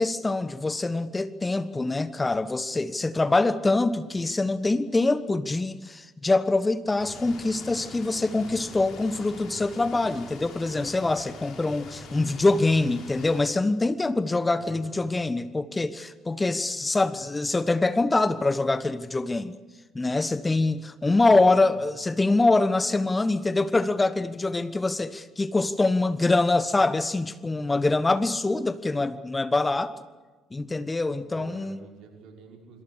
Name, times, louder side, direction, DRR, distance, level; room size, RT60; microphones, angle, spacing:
voice 1, 0.0-19.5 19.9-29.9 30.5-31.8, left 2 dB, 20° left, 14 dB, 1.2 m, -24 dB
sound 1, 7.0-13.4, left 3 dB, 60° left, 6.4 m, -44 dB
voice 2, 14.6-15.1 21.1-21.9 31.3-32.8, right 4 dB, 60° right, 1 dB, 5.7 m, -47 dB
26.5 x 26.0 x 6.5 m, 1.3 s
figure-of-eight pair, 50°, 0 cm